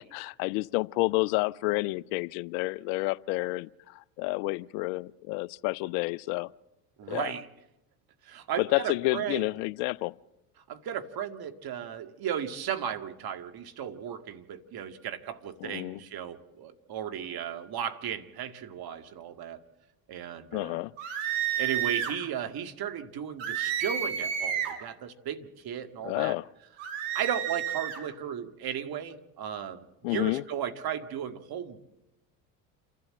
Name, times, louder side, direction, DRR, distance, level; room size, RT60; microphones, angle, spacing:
voice 1, 0.1-6.5 7.1-7.3 8.6-10.1 15.6-16.0 20.5-20.9 26.0-26.5 30.0-30.4, left 22 dB, 70° left, 0.6 m, -30 dB
voice 2, 7.0-7.5 8.2-9.4 10.7-19.6 20.1-20.8 21.6-26.3 27.1-31.8, right 9 dB, 50° right, 1.9 m, -35 dB
sound 1, 21.0-22.2 23.4-24.8 26.8-28.0, right 9 dB, 70° right, 3.3 m, -31 dB
28.5 x 12.5 x 7.7 m
hypercardioid pair, 75°, 48 cm